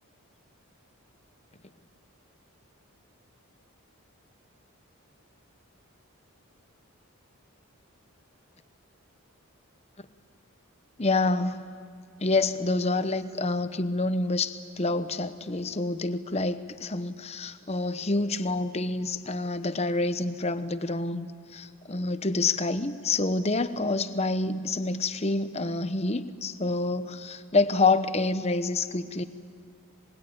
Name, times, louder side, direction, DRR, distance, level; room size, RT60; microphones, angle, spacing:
voice 1, 11.0-11.6 12.2-29.2, left 3 dB, 30° left, 11 dB, 0.9 m, -27 dB
26.0 x 21.5 x 9.4 m, 2.2 s
head